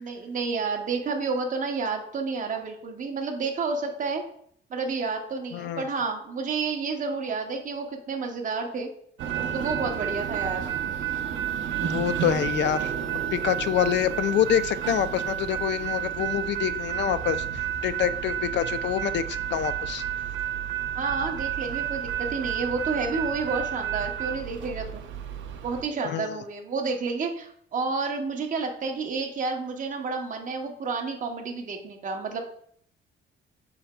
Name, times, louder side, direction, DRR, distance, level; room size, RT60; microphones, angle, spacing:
voice 1, 0.0-4.2 4.7-8.9 9.5-10.7 20.9-25.0 25.6-32.4, right 4 dB, 40° right, 2 dB, 0.8 m, -30 dB
voice 2, 5.5-5.9 11.8-12.9 13.3-20.0 26.1-26.3, left 10 dB, 65° left, 13 dB, 0.4 m, -26 dB
sound 1, 9.2-25.8, right 10 dB, 70° right, 0.6 m, -31 dB
5.7 x 3.9 x 2.2 m, 0.63 s
cardioid pair, 90°, 20 cm